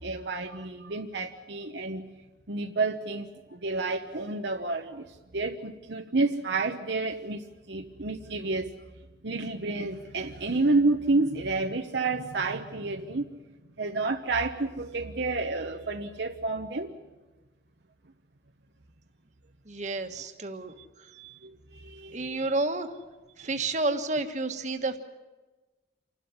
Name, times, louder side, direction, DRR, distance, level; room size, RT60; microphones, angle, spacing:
voice 1, 0.0-2.1 2.5-8.8 9.2-13.4 13.8-16.9 21.1-22.5 23.4-23.7, right 3 dB, 65° right, 4 dB, 1.0 m, -30 dB
voice 2, 19.7-20.7 22.1-22.9 23.4-25.0, right 2 dB, 40° right, 6 dB, 1.6 m, -30 dB
28.0 x 12.5 x 9.7 m, 1.2 s
head